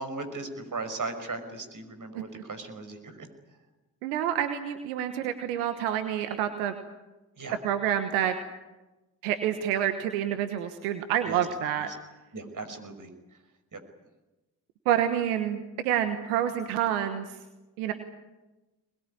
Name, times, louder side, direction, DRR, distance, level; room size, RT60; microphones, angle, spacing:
voice 1, 0.0-3.3 7.4-7.6 11.3-11.4 12.3-13.1 13.7-13.8, right 3 dB, 45° right, 8 dB, 5.8 m, -37 dB
voice 2, 4.0-6.7 7.6-8.4 9.2-11.9 14.8-17.3 17.8-17.9, right 10 dB, 90° right, 8 dB, 1.3 m, -28 dB
24.0 x 21.0 x 9.8 m, 1.1 s
hypercardioid pair, 40°, 44 cm